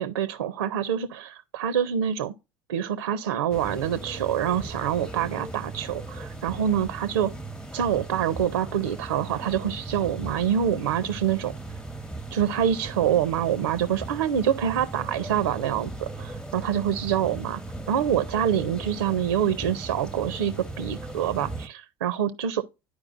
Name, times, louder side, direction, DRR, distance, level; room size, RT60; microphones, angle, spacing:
voice 1, 0.0-2.3 2.7-7.3 7.7-11.5 12.3-17.6 17.9-22.6, right 9 dB, 85° right, 0.5 m, -26 dB
sound 1, 3.5-21.7, right 2 dB, 5° left, 0.7 m, -38 dB
11.0 x 4.7 x 2.5 m
hypercardioid pair, 70°, 12 cm